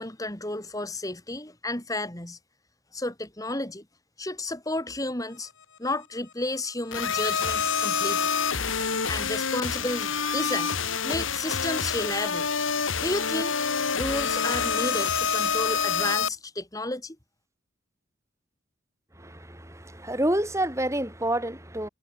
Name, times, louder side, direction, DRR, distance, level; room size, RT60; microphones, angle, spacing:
voice 1, 0.0-2.4 2.9-3.8 4.2-5.5 5.8-8.3 9.1-10.8 11.0-12.5 13.0-17.2, left 2 dB, 20° left, 3.2 m, -32 dB
sound 1, 6.9-16.3, left 6 dB, 90° left, 2.7 m, -27 dB
voice 2, 19.2-21.9, right 1 dB, 15° right, 5.3 m, -28 dB
head